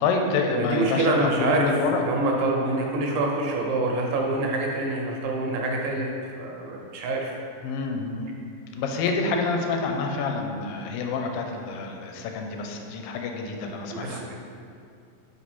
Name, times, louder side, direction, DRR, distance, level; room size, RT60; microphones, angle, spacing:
voice 1, 0.0-2.0 7.6-8.3 8.7-14.4, left 4 dB, 85° left, 3 dB, 2.3 m, -27 dB
voice 2, 0.5-1.8 2.0-6.1 6.4-7.4 13.9-14.4, right 2 dB, 80° right, 0 dB, 2.3 m, -26 dB
5.4 x 4.7 x 4.2 m, 2.4 s
omnidirectional pair, 4.1 m